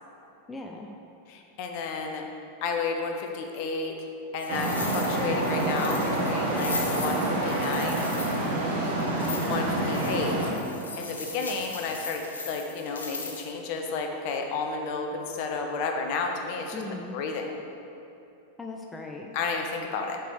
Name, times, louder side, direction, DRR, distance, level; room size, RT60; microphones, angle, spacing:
voice 1, 0.5-0.9 9.0-9.4 16.7-17.2 18.6-19.3, left 3 dB, 10° left, 1 dB, 0.6 m, -38 dB
voice 2, 1.3-2.3 2.6-3.9 4.3-8.1 9.4-10.4 11.0-16.8 17.1-17.5 19.3-20.2, left 4 dB, 45° left, 3 dB, 1.0 m, -32 dB
sound 1, 4.4-13.5, left 3 dB, 70° left, 1.0 m, -38 dB
Traffic noise roadway noise, 4.5-10.5, right 1 dB, 60° right, 1.8 m, -27 dB
7.6 x 5.2 x 6.4 m, 2.8 s
figure-of-eight pair, 90°, 0 cm